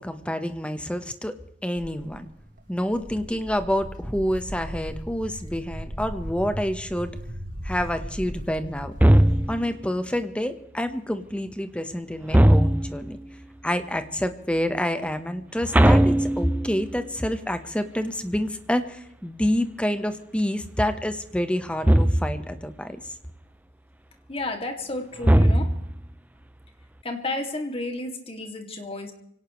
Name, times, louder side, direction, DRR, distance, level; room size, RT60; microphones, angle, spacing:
voice 1, 0.0-1.4 1.6-2.3 2.7-7.2 7.6-8.9 9.5-13.2 13.6-23.2, equal, 5° left, 9 dB, 1.1 m, -28 dB
Walk footsteps, 1.8-9.5, equal, 50° right, 2.1 m, -37 dB
sound 1, 9.0-9.8 12.3-13.1 15.7-16.9 21.8-22.5 25.2-26.1, right 1 dB, 10° right, 0.5 m, -18 dB
voice 2, 24.3-25.8 27.0-29.1, left 2 dB, 30° left, 4 dB, 2.4 m, -32 dB
25.5 x 17.5 x 3.2 m, 0.75 s
head